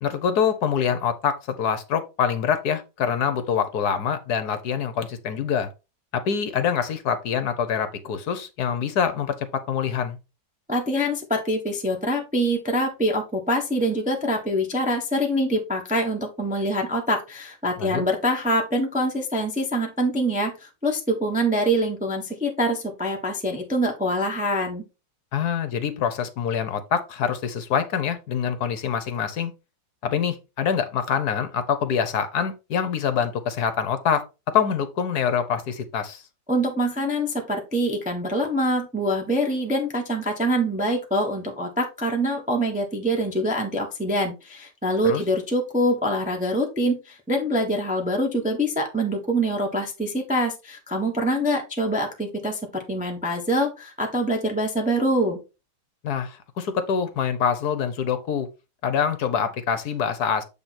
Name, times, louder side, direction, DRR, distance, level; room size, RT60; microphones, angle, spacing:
voice 1, 0.0-5.7 6.1-10.2 17.8-18.0 25.3-29.5 30.0-34.2 34.5-36.2 45.0-45.2 56.0-58.5 58.8-60.4, left 7 dB, 65° left, 1.2 m, -25 dB
voice 2, 10.7-24.8 36.5-55.4, equal, 5° right, 0.8 m, -25 dB
7.8 x 3.4 x 4.2 m
omnidirectional pair, 2.0 m